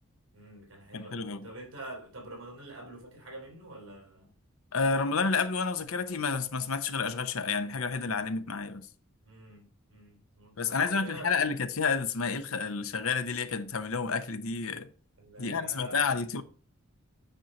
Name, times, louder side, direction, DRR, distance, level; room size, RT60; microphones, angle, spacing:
voice 1, 0.3-4.3 9.2-11.4 15.2-16.2, right 1 dB, 65° right, 3.9 m, -46 dB
voice 2, 0.9-1.5 4.7-8.9 10.6-14.9 15.4-16.4, left 5 dB, 75° left, 0.8 m, -30 dB
9.2 x 4.5 x 5.3 m
head